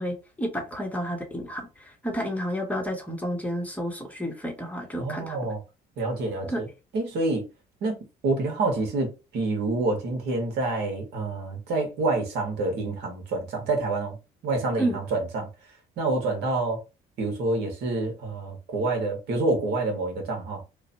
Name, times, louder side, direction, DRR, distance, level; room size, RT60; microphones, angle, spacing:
voice 1, 0.0-5.4 6.4-6.6 14.8-15.0, equal, 10° left, 1.1 m, -31 dB
voice 2, 5.0-5.6 6.0-6.7 6.9-7.5 7.8-14.2 14.4-15.5 16.0-16.8 17.2-20.6, right 2 dB, 75° right, 1.6 m, -27 dB
3.1 x 2.6 x 4.1 m
cardioid pair, 110°, 17 cm